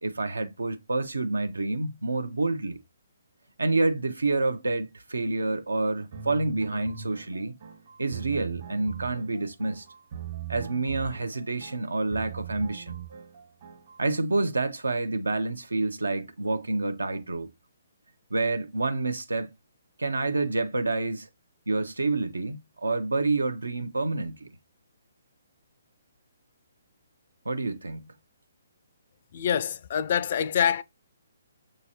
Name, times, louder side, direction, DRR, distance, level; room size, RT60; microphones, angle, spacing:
voice 1, 0.0-2.8 3.6-7.5 8.0-9.9 10.5-13.0 14.0-17.5 18.3-19.5 20.0-21.3 21.7-24.5 27.4-28.1, right 3 dB, 85° right, 0.6 m, -28 dB
sound 1, 6.1-14.0, right 9 dB, 55° right, 1.3 m, -41 dB
voice 2, 29.3-30.8, left 8 dB, 50° left, 0.4 m, -25 dB
6.4 x 2.9 x 2.8 m
figure-of-eight pair, 135°, 0 cm